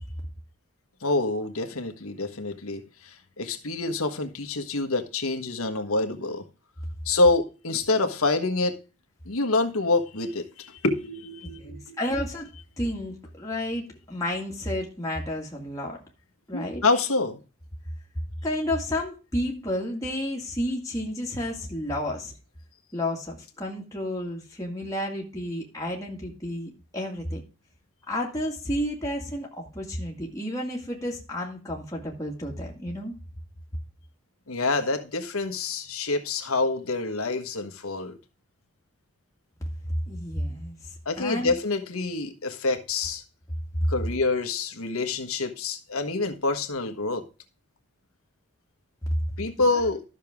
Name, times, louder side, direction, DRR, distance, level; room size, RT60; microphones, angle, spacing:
voice 1, 1.0-6.4 7.0-8.8 9.3-12.0 16.5-17.4 34.5-38.2 41.0-43.2 43.9-47.2 49.4-50.0, left 3 dB, 80° left, 1.4 m, -27 dB
voice 2, 11.4-12.5 12.8-16.0 16.5-16.8 18.4-22.3 22.9-27.4 28.1-33.1 40.1-40.8 41.2-41.5 49.3-49.8, left 1 dB, 15° left, 2.0 m, -31 dB
12.5 x 6.6 x 3.6 m
head